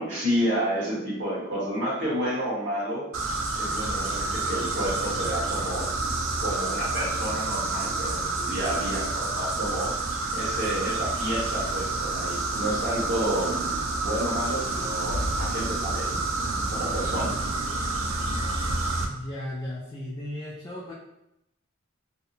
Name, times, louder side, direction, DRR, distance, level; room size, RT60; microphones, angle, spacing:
voice 1, 0.0-3.1 3.5-5.9 6.4-9.9 10.3-17.4, equal, 60° right, -8 dB, 1.2 m, -30 dB
sound 1, 3.1-19.1, right 2 dB, 90° right, 0.4 m, -29 dB
voice 2, 19.0-20.9, left 1 dB, 20° left, -6 dB, 0.3 m, -36 dB
2.7 x 2.1 x 2.7 m, 0.85 s
head